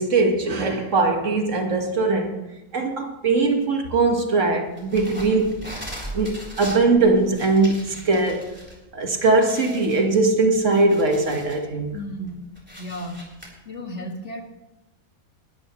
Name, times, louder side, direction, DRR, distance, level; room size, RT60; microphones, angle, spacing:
voice 1, 0.0-2.4 2.7-5.6 6.1-8.6 8.9-12.0, right 3 dB, 60° right, 1.9 m, -21 dB
sound 1, 4.8-8.7 9.1-9.2 9.5-11.6 12.1-13.5, right 1 dB, 5° right, 3.6 m, -39 dB
voice 2, 11.9-12.4 12.8-13.2 13.7-14.4, equal, 55° left, 2.2 m, -33 dB
19.5 x 13.5 x 3.1 m
omnidirectional pair, 1.5 m